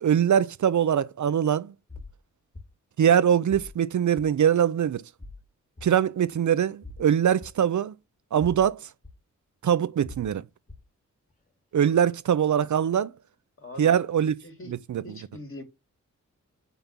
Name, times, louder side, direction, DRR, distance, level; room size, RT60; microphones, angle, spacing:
voice 1, 0.0-1.7 3.0-5.0 5.8-7.9 8.3-8.9 9.6-10.4 11.7-13.1 13.8-14.3 14.9-15.0, right 9 dB, 70° right, 0.6 m, -22 dB
sound 1, 1.9-2.1 2.5-2.7 3.5-3.8 4.2-4.3 5.2-5.4 5.8-5.9 6.8-7.0 7.4-7.5 8.4-8.7 9.0-9.1 10.0-10.3 10.7-10.8, left 2 dB, 25° left, 1.9 m, -42 dB
voice 2, 13.6-14.0 14.2-14.7 15.0-15.6, left 2 dB, 45° left, 3.3 m, -42 dB
6.9 x 5.4 x 6.0 m
cardioid pair, 70°, 31 cm